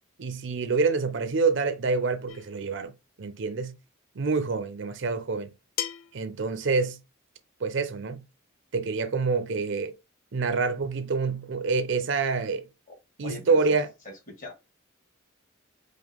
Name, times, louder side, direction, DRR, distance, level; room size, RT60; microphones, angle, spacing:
voice 1, 0.2-2.9 3.2-3.8 4.2-5.5 6.1-7.0 7.6-8.2 8.7-9.9 10.3-12.7 13.2-13.9, right 4 dB, 60° right, 0.6 m, -27 dB
sound 1, 2.3-2.6 4.2-4.3 5.8-6.2, left 10 dB, 75° left, 0.4 m, -35 dB
voice 2, 13.2-13.7 14.4-14.6, left 3 dB, 40° left, 1.7 m, -41 dB
4.9 x 2.1 x 3.6 m
head